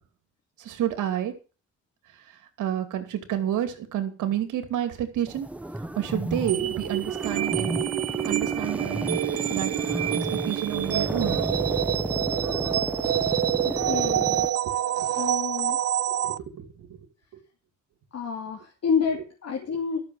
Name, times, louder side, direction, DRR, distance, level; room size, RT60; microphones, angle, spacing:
voice 1, 0.6-1.3 2.6-5.5 6.0-7.8 8.3-9.7 10.1-11.4 14.2-14.3 15.0-15.1 16.2-16.9 19.7-19.8, right 10 dB, 85° right, 8 dB, 2.6 m, -30 dB
sound 1, 5.3-14.5, right 1 dB, 5° right, 1.0 m, -32 dB
sound 2, 6.5-16.4, right 11 dB, 55° right, 0.6 m, -27 dB
voice 2, 13.6-14.5 15.2-15.8 18.1-20.0, left 6 dB, 55° left, 0 dB, 2.8 m, -29 dB
12.5 x 7.1 x 7.7 m, 0.36 s
cardioid pair, 90°, 30 cm